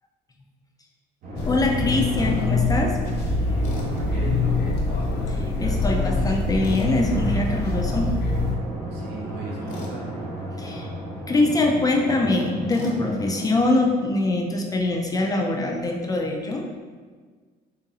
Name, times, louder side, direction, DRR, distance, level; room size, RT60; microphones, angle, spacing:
Drum, 1.2-14.3, equal, 60° right, 1.1 m, -33 dB
sound 1, 1.4-8.5, left 3 dB, 80° left, 0.6 m, -25 dB
voice 1, 1.5-2.9 5.6-8.1 10.6-10.9 11.3-16.7, left 2 dB, 20° left, 1 dB, 0.4 m, -23 dB
Tools, 3.6-3.9 6.6-6.9 9.7-10.0 12.7-13.0, left 1 dB, 50° left, 0.8 m, -38 dB
voice 2, 3.7-5.1 8.9-10.2, right 3 dB, 75° right, -2 dB, 0.9 m, -36 dB
3.9 x 2.8 x 2.7 m, 1.5 s
cardioid pair, 110°, 17 cm